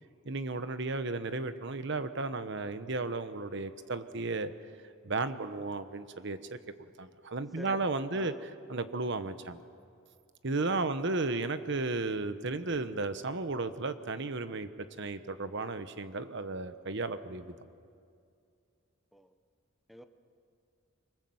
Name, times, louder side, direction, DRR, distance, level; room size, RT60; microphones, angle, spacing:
voice 1, 0.2-4.5 5.0-6.6 7.0-9.6 10.4-14.7 15.0-17.5, right 3 dB, 60° right, 10 dB, 1.1 m, -34 dB
voice 2, 7.6-7.8 8.1-8.4 10.7-10.8 19.1-19.3 19.9-20.0, equal, ahead, 8 dB, 0.9 m, -47 dB
26.0 x 24.5 x 7.9 m, 2.3 s
head